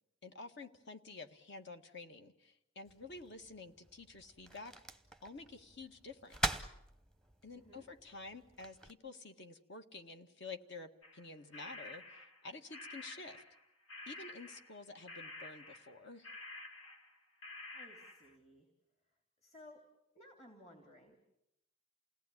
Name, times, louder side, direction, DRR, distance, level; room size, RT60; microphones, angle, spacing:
voice 1, 0.2-4.7 5.2-6.6 7.4-13.4 14.1-16.3, left 3 dB, 55° left, 7 dB, 1.7 m, -50 dB
sound 1, 2.9-8.9, right 1 dB, ahead, 1.0 m, -44 dB
sound 2, 11.0-13.6 13.9-17.2 17.4-18.3, left 2 dB, 75° left, 2.6 m, -50 dB
voice 2, 17.7-18.7 19.4-19.8 20.1-21.2, left 1 dB, 30° left, 4 dB, 3.0 m, -58 dB
29.0 x 18.5 x 10.0 m, 0.84 s
head